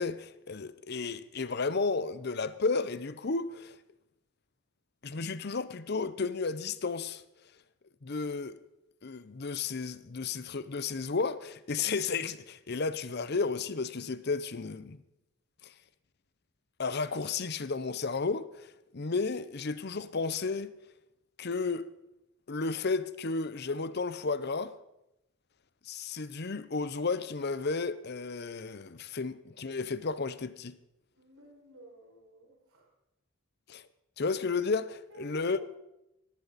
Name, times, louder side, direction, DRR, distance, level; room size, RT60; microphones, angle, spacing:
voice 1, 0.0-3.8 5.0-7.2 8.0-8.6 9.0-15.0 16.8-20.7 21.4-21.9 22.5-24.7 25.9-30.7 33.7-33.8 34.2-35.6, left 4 dB, 50° left, 0.7 m, -33 dB
voice 2, 31.1-32.9 35.1-35.8, right 1 dB, 85° right, 5.9 m, -53 dB
19.5 x 14.5 x 4.1 m
head